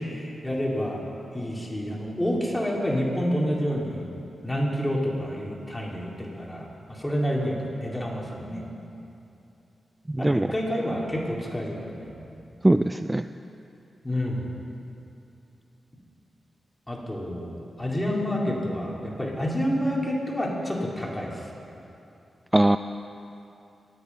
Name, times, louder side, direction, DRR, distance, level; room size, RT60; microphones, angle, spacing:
voice 1, 0.1-1.0 1.3-4.0 4.4-8.6 10.2-12.1 14.0-14.5 16.9-17.5 17.8-21.4, equal, 15° left, -3 dB, 3.8 m, -28 dB
voice 2, 10.1-10.5 12.6-13.2 22.5-22.8, right 1 dB, 15° right, 10 dB, 0.4 m, -20 dB
23.5 x 8.2 x 5.7 m, 2.8 s
cardioid pair, 45°, 0 cm